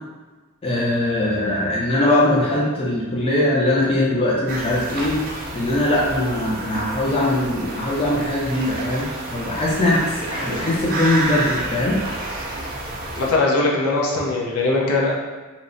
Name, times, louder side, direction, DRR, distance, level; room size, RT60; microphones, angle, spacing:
voice 1, 0.6-5.2 5.5-12.0, left 1 dB, 25° left, -5 dB, 0.4 m, -21 dB
sound 1, 4.5-13.3, right 2 dB, 40° right, 0.4 m, -30 dB
voice 2, 13.1-15.1, left 2 dB, 70° left, -2 dB, 0.5 m, -20 dB
2.9 x 2.0 x 2.5 m, 1.3 s
head